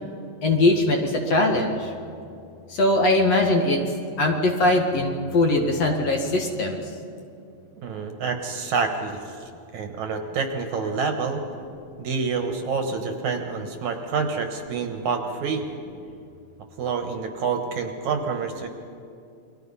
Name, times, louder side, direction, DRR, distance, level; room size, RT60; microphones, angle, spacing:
voice 1, 0.4-1.9 2.7-3.8 4.2-6.8, left 2 dB, 50° left, 2 dB, 2.5 m, -21 dB
voice 2, 7.8-11.4 12.0-15.7 16.8-18.7, right 5 dB, 65° right, 5 dB, 2.4 m, -28 dB
29.0 x 22.5 x 5.6 m, 2.6 s
omnidirectional pair, 4.1 m